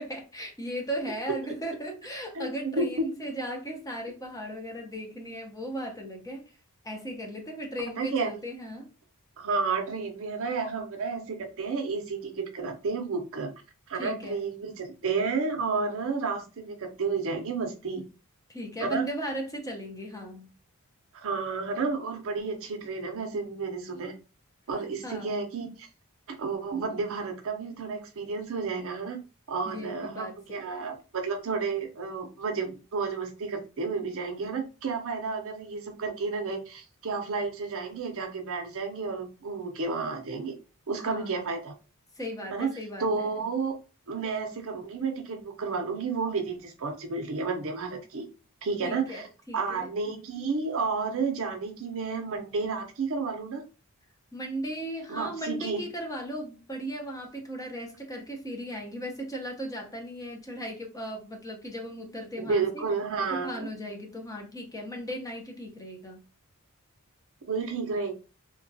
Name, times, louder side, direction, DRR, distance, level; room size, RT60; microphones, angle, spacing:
voice 1, 0.0-6.5 6.8-8.9 13.9-14.5 18.5-20.5 25.0-25.4 29.6-30.8 40.9-41.5 42.1-43.3 48.8-49.9 54.3-62.9 63.3-66.2, equal, 15° left, 0.7 m, -37 dB
voice 2, 8.0-8.3 9.4-13.5 13.9-18.0 18.8-19.1 21.1-24.1 24.7-25.9 26.4-29.2 29.5-40.5 40.9-41.7 42.5-42.7 43.0-43.7 44.1-48.2 48.6-49.2 49.5-53.6 55.1-55.8 62.4-63.7 67.5-68.1, right 4 dB, 65° right, 0.6 m, -31 dB
2.8 x 2.3 x 2.6 m
head